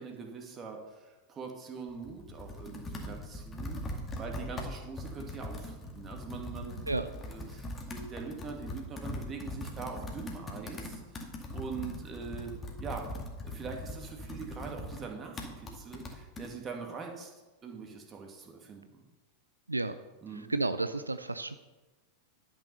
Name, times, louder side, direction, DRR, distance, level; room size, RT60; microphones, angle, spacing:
voice 1, 0.0-3.8 4.2-6.8 7.3-12.5 12.8-13.1 13.4-17.3 17.6-19.0 20.2-20.5, right 5 dB, 25° right, 2 dB, 2.2 m, -43 dB
Computer keyboard, 1.9-16.5, left 1 dB, 20° left, 2.0 m, -41 dB
voice 2, 20.3-21.6, right 2 dB, 80° right, 11 dB, 0.4 m, -32 dB
12.0 x 6.3 x 6.7 m, 1.2 s
figure-of-eight pair, 90°, 0 cm